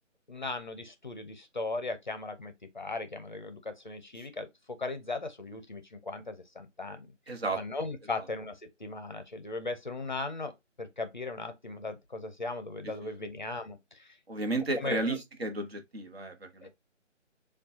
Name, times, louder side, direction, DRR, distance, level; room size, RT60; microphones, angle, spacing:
voice 1, 0.3-4.5 4.8-7.1 7.5-10.5 10.8-14.2 14.8-15.2 16.6-16.7, left 3 dB, 40° left, 0.6 m, -38 dB
voice 2, 7.3-7.6 13.0-13.3 14.3-16.7, right 2 dB, 55° right, 1.2 m, -33 dB
6.9 x 2.3 x 2.7 m
figure-of-eight pair, 160°, 37 cm